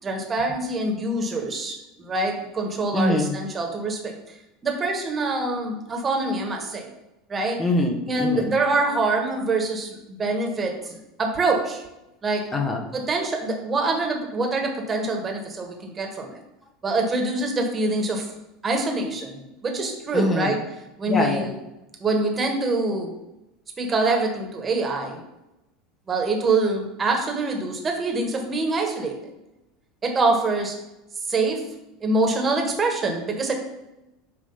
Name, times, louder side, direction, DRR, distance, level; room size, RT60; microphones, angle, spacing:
voice 1, 0.0-4.1 4.6-6.9 7.3-7.6 8.1-11.8 12.2-12.5 12.9-16.4 16.8-18.3 18.6-20.6 21.0-21.5 22.0-23.1 23.8-25.2 26.1-29.1 30.0-30.7 31.3-31.6 32.0-33.5, right 3 dB, 25° right, 2 dB, 1.6 m, -25 dB
voice 2, 2.9-3.3 7.6-8.5 12.5-12.9 20.1-20.5 21.1-21.5, left 2 dB, 25° left, 2 dB, 1.2 m, -24 dB
8.5 x 3.3 x 5.6 m, 0.94 s
figure-of-eight pair, 75°, 0 cm